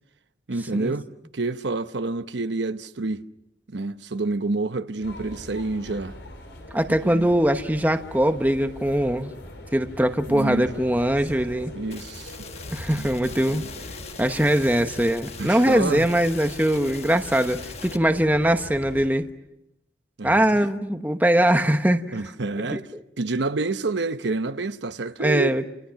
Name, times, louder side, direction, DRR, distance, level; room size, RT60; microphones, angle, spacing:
voice 1, 0.5-1.0 1.3-3.2 3.7-6.2 7.1-7.3 10.3-10.7 11.7-12.5 12.9-13.0 15.4-16.1 20.2-20.5 22.1-25.6, right 3 dB, 75° right, 0.9 m, -28 dB
sound 1, 5.0-19.1, left 1 dB, 85° left, 5.2 m, -41 dB
voice 2, 6.7-9.3 9.7-11.7 12.7-13.6 14.2-19.3 20.2-22.2 22.7-22.8 25.2-25.6, right 1 dB, 10° right, 1.0 m, -22 dB
sound 2, 11.9-18.0, left 7 dB, 35° left, 1.2 m, -42 dB
29.5 x 29.5 x 5.8 m
head